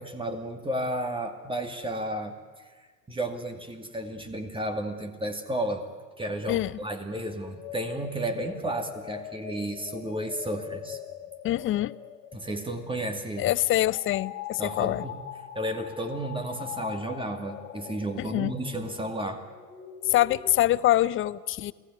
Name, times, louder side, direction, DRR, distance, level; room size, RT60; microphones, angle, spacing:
voice 1, 0.0-5.9 6.2-11.0 12.3-13.5 14.6-15.2 15.5-19.4, right 1 dB, 10° right, 5 dB, 2.4 m, -33 dB
sound 1, 7.3-20.5, left 10 dB, 65° left, 2.7 m, -42 dB
voice 2, 11.4-11.9 13.4-15.0 18.2-18.5 20.1-21.7, left 14 dB, 25° left, 19 dB, 0.7 m, -25 dB
29.0 x 17.5 x 9.4 m, 1.5 s
hypercardioid pair, 95°, 50 cm